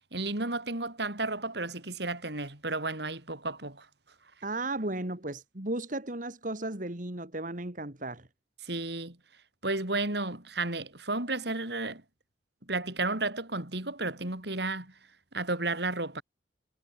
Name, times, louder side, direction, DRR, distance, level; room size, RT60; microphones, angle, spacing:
voice 1, 0.1-3.9 8.6-9.2 9.6-12.0 12.7-14.9 15.3-16.2, right 2 dB, 60° right, 4.3 m, -32 dB
voice 2, 4.4-8.3, right 2 dB, 45° right, 2.3 m, -35 dB
head